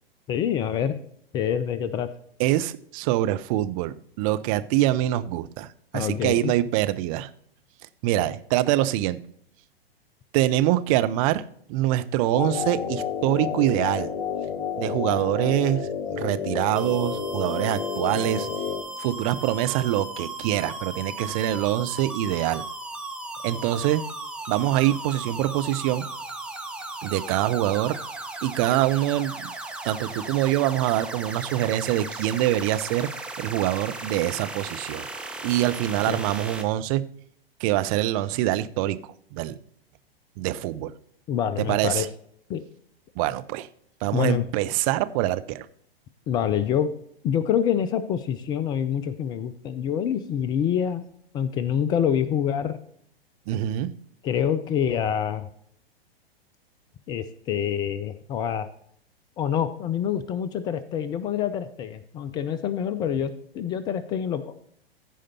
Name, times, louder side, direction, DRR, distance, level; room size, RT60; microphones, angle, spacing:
voice 1, 0.3-1.0 1.3-2.1 5.9-6.5 36.1-36.2 41.3-42.0 42.5-42.6 44.1-44.4 46.3-46.9 47.2-51.1 51.3-52.8 54.2-55.5 57.1-58.7 59.4-64.6, left 9 dB, 15° left, 14 dB, 0.3 m, -26 dB
voice 2, 2.4-7.3 8.0-9.2 10.3-11.4 11.7-14.1 14.8-18.5 19.0-22.6 23.4-24.0 24.5-26.1 27.0-28.0 28.4-29.5 29.8-33.1 33.4-35.1 35.4-37.1 37.6-39.0 39.3-39.6 40.4-40.9 41.6-42.1 43.2-43.7 44.0-45.7 53.5-53.9, right 14 dB, 35° right, 12 dB, 0.7 m, -24 dB
sound 1, 12.3-18.8, left 7 dB, 55° left, 1.3 m, -30 dB
sound 2, 16.8-36.6, right 2 dB, 5° right, 1.0 m, -36 dB
15.0 x 5.0 x 4.2 m, 0.66 s
figure-of-eight pair, 105°, 30 cm